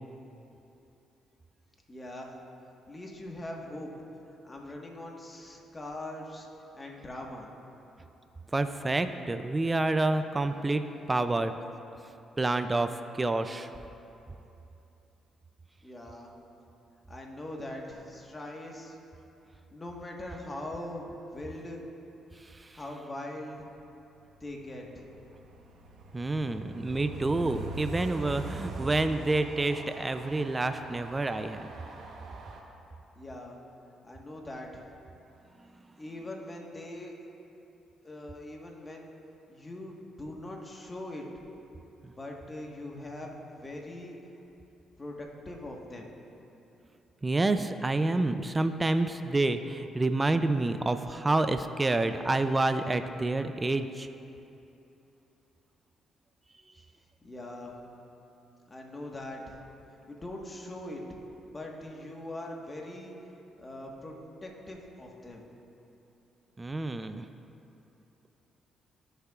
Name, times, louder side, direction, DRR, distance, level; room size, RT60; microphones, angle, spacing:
voice 1, 1.9-2.4 2.9-3.9 4.4-6.5 6.7-7.5 15.8-16.3 17.1-19.0 19.7-21.8 22.7-23.7 24.4-25.1 33.1-33.6 34.0-34.9 36.0-37.1 38.0-39.1 39.5-41.3 42.2-44.2 45.0-46.1 56.7-56.8 57.2-57.7 58.7-59.6 60.1-61.0 61.5-63.2 63.6-64.1 64.4-65.5, left 1 dB, 25° left, 0 dB, 1.4 m, -41 dB
voice 2, 8.5-11.5 12.4-13.7 22.4-22.8 26.1-31.7 42.0-42.1 47.2-54.1 66.6-67.3, right 2 dB, 20° right, 9 dB, 0.4 m, -28 dB
Train, 24.2-32.6, right 2 dB, 65° right, 1.0 m, -43 dB
17.5 x 6.7 x 2.4 m, 2.9 s
cardioid pair, 90°, 0 cm